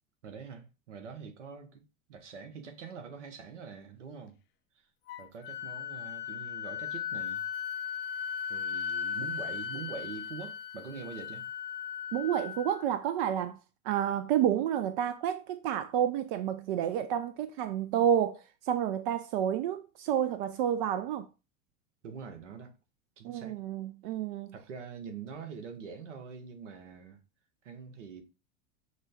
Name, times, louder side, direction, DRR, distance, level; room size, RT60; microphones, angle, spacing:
voice 1, 0.2-1.8 2.1-4.4 5.2-7.4 8.5-11.4 22.0-22.7 23.2-23.6 24.5-27.2 27.6-28.2, right 6 dB, 65° right, 1.0 m, -44 dB
Wind instrument woodwind instrument, 5.1-12.8, left 8 dB, 30° left, 0.4 m, -37 dB
voice 2, 12.1-13.6 13.8-21.3 23.2-24.5, right 10 dB, 45° right, 0.4 m, -30 dB
6.4 x 2.2 x 3.4 m
figure-of-eight pair, 80°, 38 cm